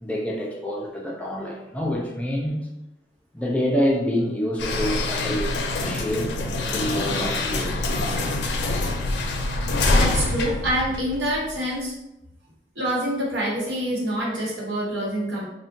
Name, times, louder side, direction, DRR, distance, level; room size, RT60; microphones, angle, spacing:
voice 1, 0.0-2.7 3.3-6.3 6.7-7.9, equal, 10° left, -2 dB, 0.3 m, -27 dB
sound 1, 4.6-11.6, left 2 dB, 80° left, 0.4 m, -25 dB
voice 2, 9.9-11.9 12.7-15.5, right 1 dB, 90° right, -5 dB, 1.0 m, -26 dB
3.5 x 2.1 x 2.5 m, 0.91 s
head